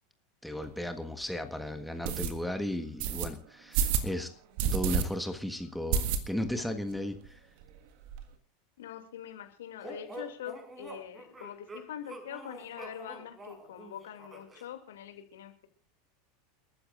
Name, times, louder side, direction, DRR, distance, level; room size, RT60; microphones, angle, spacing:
voice 1, 0.4-4.3 4.7-7.4, left 1 dB, ahead, 7 dB, 1.5 m, -35 dB
sound 1, 0.6-0.7 1.2-1.3 2.0-2.3 3.0-3.3 3.7-4.1 4.6-5.0 5.3-5.4 5.9-6.6 6.9-7.0 7.2-7.3 7.6-8.2, right 7 dB, 55° right, 1.7 m, -29 dB
voice 2, 8.8-15.7, left 10 dB, 65° left, 6 dB, 2.6 m, -44 dB
sound 2, 9.8-14.7, right 1 dB, 20° right, 5.2 m, -46 dB
29.5 x 13.0 x 2.5 m, 0.40 s
figure-of-eight pair, 80°, 0 cm